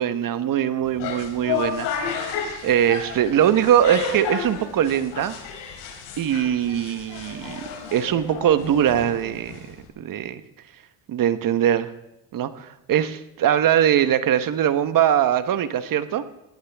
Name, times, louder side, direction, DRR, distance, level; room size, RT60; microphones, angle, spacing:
voice 1, 0.0-2.4 2.6-5.4 6.2-7.6 7.9-10.4 11.1-11.9 12.3-16.2, right 10 dB, 45° right, 11 dB, 1.3 m, -22 dB
sound 1, 0.8-9.9, left 6 dB, 65° left, 5.2 m, -32 dB
20.0 x 17.5 x 3.6 m, 0.87 s
supercardioid pair, 95°, 46 cm